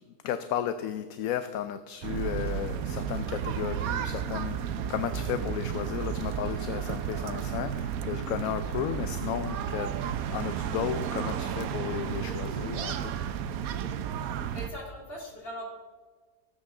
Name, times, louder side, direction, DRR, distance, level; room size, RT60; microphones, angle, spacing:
voice 1, 0.0-13.2, left 10 dB, 75° left, 11 dB, 1.0 m, -34 dB
sound 1, 1.8-2.3 5.1-9.4 12.2-14.1, right 5 dB, 45° right, 0.7 m, -51 dB
sound 2, 2.0-14.7, right 8 dB, 75° right, 1.1 m, -33 dB
Whoosh swoosh swish, 2.4-2.9 3.1-3.7 4.0-4.5 4.9-5.0 5.3-5.5 5.8-8.1, equal, 10° left, 2.4 m, -55 dB
voice 2, 14.5-15.7, equal, 40° left, -2 dB, 3.3 m, -40 dB
18.0 x 8.3 x 3.7 m, 1.4 s
omnidirectional pair, 1.6 m